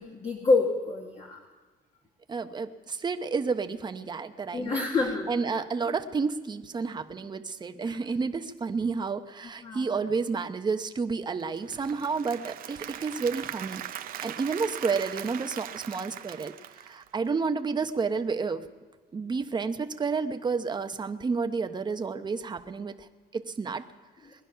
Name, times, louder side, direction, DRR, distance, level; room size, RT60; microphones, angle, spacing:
voice 1, 0.0-1.4 4.5-5.3 5.9-6.0 7.9-8.0 9.6-10.0 24.3-24.4, left 3 dB, 35° left, 0 dB, 1.9 m, -27 dB
voice 2, 2.3-4.8 5.3-13.8 14.2-18.6 19.1-23.8, right 4 dB, 25° right, 8 dB, 0.9 m, -30 dB
Applause / Crowd, 11.4-17.5, right 11 dB, 60° right, 0.7 m, -40 dB
20.5 x 11.0 x 5.7 m, 1.3 s
cardioid pair, 110°, 17 cm